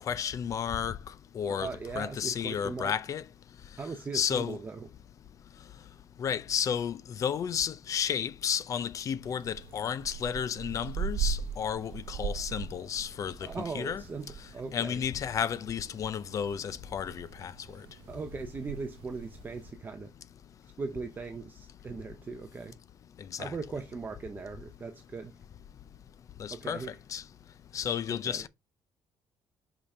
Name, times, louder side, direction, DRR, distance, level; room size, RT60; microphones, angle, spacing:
voice 1, 0.1-1.0 1.3-3.2 4.1-4.6 6.2-14.0 14.7-17.8 23.2-23.6 26.4-27.2 27.7-28.5, left 8 dB, 35° left, 0.5 m, -32 dB
voice 2, 1.5-2.9 3.8-4.8 13.4-15.0 18.1-20.1 20.8-22.8 23.4-25.3 26.5-26.9 28.3-28.4, right 4 dB, 20° right, 0.6 m, -39 dB
sound 1, 9.2-19.7, right 7 dB, 85° right, 0.7 m, -40 dB
5.6 x 5.0 x 4.1 m
cardioid pair, 170°, 9 cm